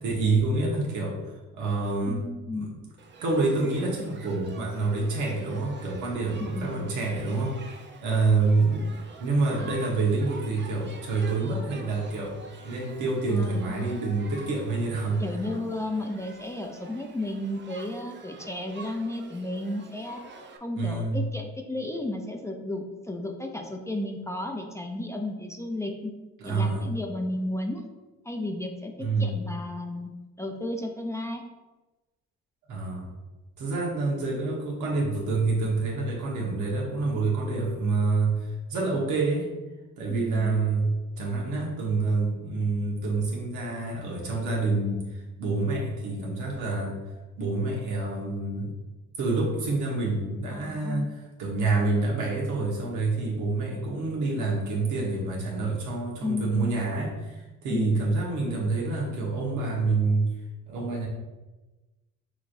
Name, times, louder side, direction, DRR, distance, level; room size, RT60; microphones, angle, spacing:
voice 1, 0.0-2.2 2.5-2.7 3.2-7.7 8.0-15.2 20.8-21.2 26.4-26.9 29.0-29.4 32.7-33.1 33.6-39.5 40.0-47.0 47.4-48.7 49.2-51.1 51.4-60.3 60.6-61.1, right 3 dB, 80° right, -3 dB, 1.3 m, -27 dB
voice 2, 2.1-2.8 6.4-6.8 13.3-13.9 15.2-20.2 20.6-26.1 26.4-27.8 28.2-30.1 30.4-31.4 40.1-40.6 50.5-51.1 56.2-56.7 57.7-58.0, left 1 dB, 10° left, 2 dB, 0.5 m, -33 dB
Shout / Human group actions, 3.0-20.6, right 4 dB, 40° right, 0.6 m, -47 dB
6.0 x 3.1 x 2.6 m, 1.2 s
cardioid pair, 90°, 30 cm